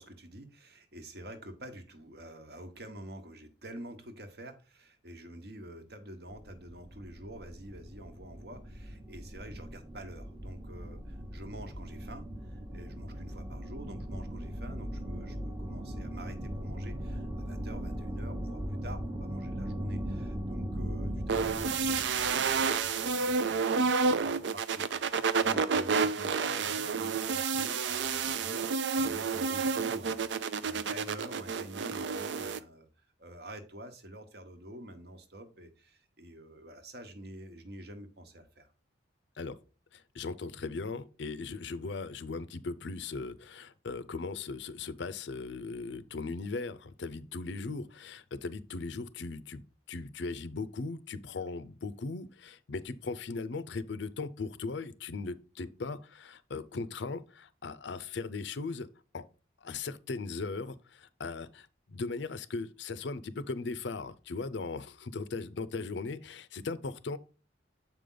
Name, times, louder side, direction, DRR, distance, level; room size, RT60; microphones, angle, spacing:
voice 1, 0.0-38.7, right 1 dB, 55° right, 1.1 m, -48 dB
sound 1, 6.3-23.3, equal, 25° right, 0.9 m, -39 dB
sound 2, 21.3-32.6, right 5 dB, 75° right, 0.5 m, -30 dB
voice 2, 39.9-49.6 49.9-58.9 59.1-59.2 59.6-67.2, left 3 dB, 70° left, 0.5 m, -38 dB
7.2 x 5.1 x 3.8 m
head